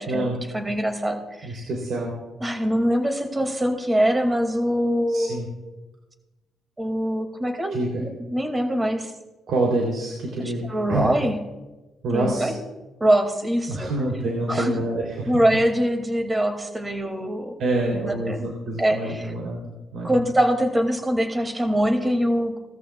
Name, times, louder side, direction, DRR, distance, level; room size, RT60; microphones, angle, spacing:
voice 1, 0.5-1.6 2.4-5.4 6.8-9.1 10.4-11.4 12.1-12.5 13.0-13.9 14.5-14.8 15.3-17.6 17.9-18.4 18.8-19.3 20.0-22.6, equal, 20° right, 4 dB, 2.3 m, -23 dB
voice 2, 1.4-2.2 5.1-5.5 7.7-8.0 9.5-11.1 12.0-12.5 13.7-15.3 17.6-20.2, right 2 dB, 70° right, -2 dB, 3.2 m, -27 dB
19.0 x 13.5 x 2.4 m, 1.1 s
cardioid pair, 90°, 0 cm